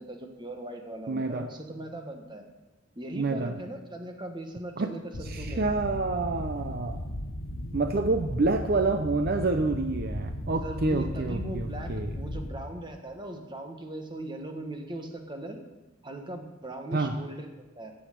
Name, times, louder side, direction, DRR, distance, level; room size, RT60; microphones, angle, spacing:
voice 1, 0.0-2.4 2.9-5.6 10.6-15.6 16.0-17.9, right 1 dB, 25° right, 4 dB, 1.3 m, -39 dB
voice 2, 1.1-1.5 3.1-3.5 4.8-4.9 5.2-7.0 7.7-12.1 16.9-17.2, right 3 dB, 55° right, 6 dB, 0.6 m, -28 dB
sound 1, 5.1-12.5, left 1 dB, 75° left, 1.2 m, -36 dB
14.5 x 6.5 x 7.6 m, 1.1 s
head